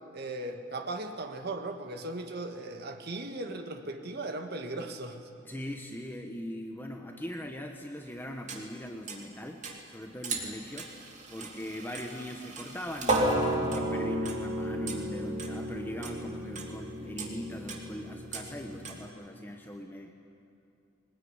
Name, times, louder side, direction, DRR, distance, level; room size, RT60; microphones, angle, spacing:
voice 1, 0.1-5.3, right 2 dB, 55° right, 5 dB, 1.8 m, -37 dB
voice 2, 5.4-10.9 11.3-20.1, left 1 dB, 10° left, 3 dB, 1.2 m, -40 dB
sound 1, 8.5-8.6 9.1-9.2 9.6-9.7 10.2-10.5 10.8-19.1, right 1 dB, 35° right, 2.8 m, -33 dB
21.0 x 19.5 x 9.9 m, 2.5 s
head